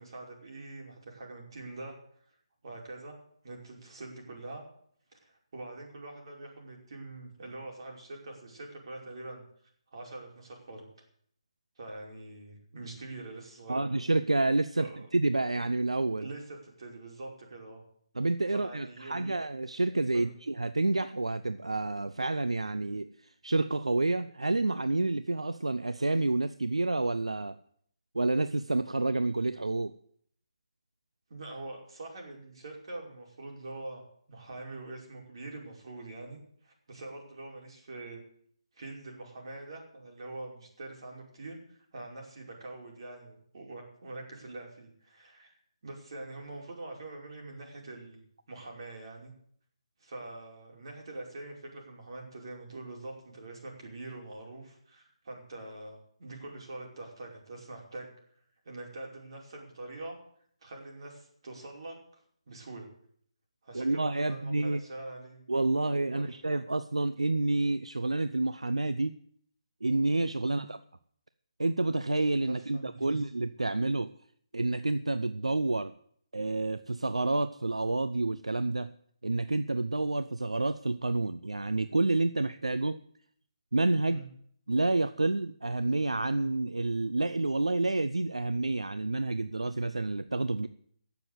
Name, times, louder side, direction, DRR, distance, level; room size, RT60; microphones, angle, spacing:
voice 1, 0.0-1.9 2.6-3.2 3.4-4.6 5.2-9.4 9.9-10.9 11.8-13.9 14.8-14.9 16.2-17.8 18.5-19.3 20.1-20.3 31.3-34.0 34.3-38.2 38.7-48.2 48.5-49.3 50.0-58.1 58.6-60.1 60.6-62.9 63.6-65.4 66.1-66.4 70.4-70.7 72.5-73.2 84.1-84.3, right 2 dB, 55° right, 0 dB, 5.3 m, -44 dB
voice 2, 13.7-16.3 18.2-23.1 23.4-27.6 28.1-29.9 63.7-64.8 65.5-69.2 69.8-70.8 71.6-74.1 74.5-75.9 76.3-78.9 79.2-83.0 83.7-84.2 84.7-90.7, right 2 dB, 85° right, 12 dB, 0.6 m, -29 dB
17.5 x 7.1 x 8.0 m, 0.64 s
figure-of-eight pair, 145°, 3 cm